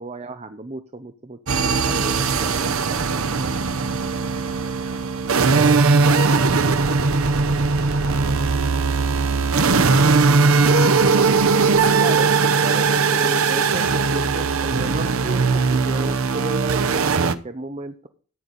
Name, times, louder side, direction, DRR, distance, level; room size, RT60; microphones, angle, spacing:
voice 1, 0.0-3.5 12.0-12.3 12.6-18.1, right 2 dB, 30° right, 0.8 m, -33 dB
sound 1, 1.5-17.3, right 4 dB, 75° right, 0.8 m, -19 dB
voice 2, 4.3-4.4, right 2 dB, 45° right, 5.7 m, -47 dB
14.0 x 9.2 x 4.1 m
head